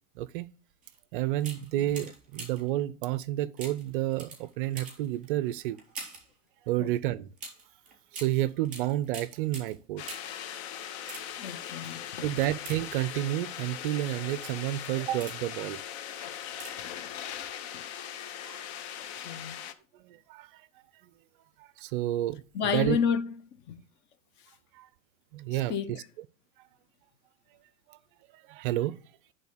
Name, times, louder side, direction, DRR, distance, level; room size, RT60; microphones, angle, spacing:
voice 1, 0.2-0.5 1.1-5.8 6.7-7.3 8.1-10.0 12.2-15.8 18.4-18.6 19.0-19.1 20.0-20.5 21.8-22.4 22.7-23.0 24.7-24.9 25.3-26.0 27.9-28.0 28.5-29.0, right 14 dB, 45° right, 0.5 m, -30 dB
sound 1, 0.8-1.0 1.4-2.8 3.6-6.3 7.4-10.4 10.9-11.6 12.5-13.4 14.0-14.3 14.8-15.6 16.5-17.0 17.2-17.3, right 3 dB, 20° right, 3.5 m, -45 dB
sound 2, 10.0-19.7, left 9 dB, 55° left, 1.0 m, -40 dB
voice 2, 11.4-12.3 16.8-17.9 19.2-19.6 22.5-23.3 23.7-23.8 25.5-26.0, left 7 dB, 30° left, 0.6 m, -32 dB
10.5 x 3.7 x 6.4 m
hypercardioid pair, 120°, 38 cm